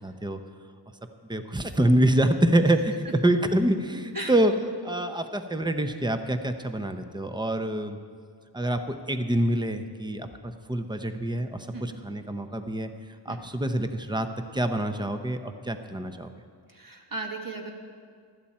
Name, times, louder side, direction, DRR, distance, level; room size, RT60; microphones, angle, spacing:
voice 1, 0.0-0.4 1.3-2.9 3.2-4.5 4.8-8.0 8.5-12.9 13.2-14.3 14.5-16.3, right 1 dB, 10° right, 8 dB, 0.8 m, -26 dB
voice 2, 16.7-17.7, right 2 dB, 50° right, 1 dB, 1.8 m, -36 dB
16.0 x 12.5 x 4.4 m, 2.1 s
wide cardioid pair, 50°, 43 cm